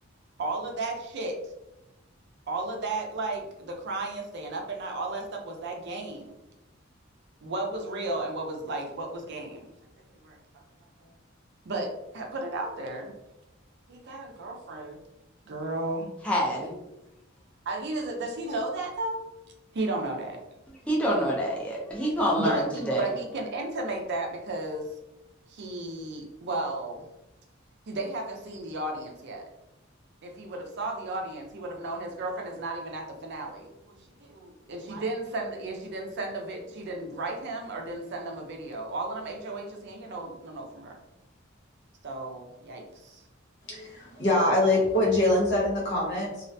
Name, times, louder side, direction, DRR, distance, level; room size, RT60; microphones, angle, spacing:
voice 1, 0.4-1.4 2.5-6.4 7.4-9.7 10.2-10.4 11.0-11.1 11.6-13.1 13.9-15.0 15.5-16.1 16.5-16.8 17.7-19.3 19.7-20.4 22.3-24.9 25.5-27.1 27.9-29.5 30.2-41.0 42.0-43.2, right 2 dB, 60° right, 2 dB, 0.5 m, -34 dB
voice 2, 16.2-16.7 20.9-23.0, equal, 5° left, -4 dB, 0.4 m, -26 dB
voice 3, 43.7-46.5, left 1 dB, 60° left, -4 dB, 1.0 m, -24 dB
2.4 x 2.1 x 2.5 m, 0.90 s
head